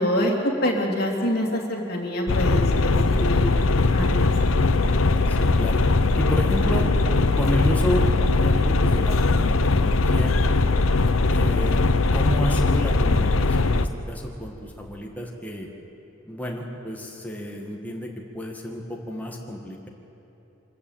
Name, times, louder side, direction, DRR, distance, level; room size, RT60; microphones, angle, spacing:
voice 1, 0.0-3.7 3.9-4.3, equal, 50° left, -1 dB, 3.1 m, -26 dB
sound 1, 2.3-13.9, left 3 dB, 85° left, 0.8 m, -20 dB
voice 2, 5.3-6.9 7.1-10.4 11.3-15.7 16.3-19.9, equal, 10° left, 0 dB, 1.9 m, -31 dB
25.0 x 14.0 x 8.9 m, 2.9 s
head